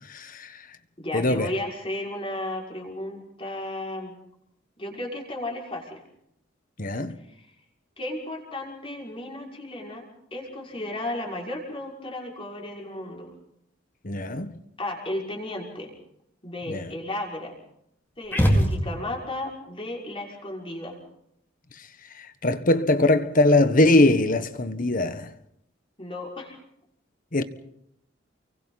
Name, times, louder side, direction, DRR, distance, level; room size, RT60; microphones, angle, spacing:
voice 1, 0.1-0.5 1.1-1.5 6.8-7.2 14.0-14.6 16.7-16.9 18.4-18.6 22.2-25.3 27.3-27.4, left 2 dB, 45° left, 1.4 m, -22 dB
voice 2, 1.0-4.1 4.8-6.0 7.2-7.5 8.0-13.3 14.8-15.9 16.4-17.6 18.2-21.0 26.0-26.6, left 1 dB, 25° left, 5.9 m, -34 dB
sound 1, 18.3-19.3, equal, 10° left, 4.3 m, -22 dB
29.5 x 24.0 x 4.2 m
head